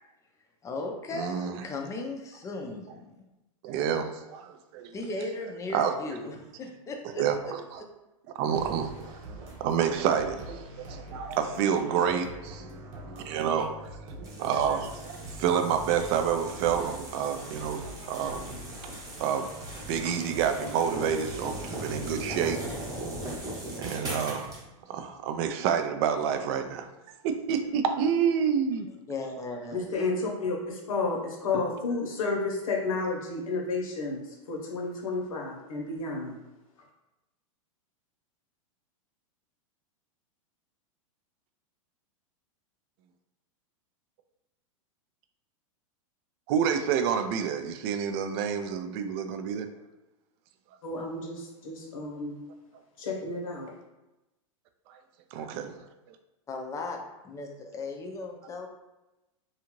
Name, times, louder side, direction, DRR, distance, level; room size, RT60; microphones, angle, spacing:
voice 1, 0.6-3.2 4.9-7.2 29.1-29.8 56.5-58.7, left 2 dB, 20° left, 2 dB, 0.4 m, -37 dB
voice 2, 1.1-1.7 3.6-4.9 5.7-5.9 7.2-7.8 8.4-8.9 9.6-12.6 13.2-13.9 14.2-18.4 19.2-19.5 19.8-22.6 23.8-24.5 24.9-26.9 27.2-28.9 46.5-49.7 54.9-55.0 55.3-55.7 56.1-56.2, right 7 dB, 50° right, 7 dB, 0.4 m, -28 dB
sound 1, 8.5-23.3, right 1 dB, 75° right, 0.9 m, -44 dB
sound 2, 14.2-24.6, right 1 dB, 20° right, 0.8 m, -40 dB
voice 3, 29.7-36.4 50.8-52.4 53.0-53.7, left 3 dB, 80° left, 0 dB, 0.9 m, -31 dB
2.7 x 2.4 x 3.0 m, 0.99 s
hypercardioid pair, 120°, 17 cm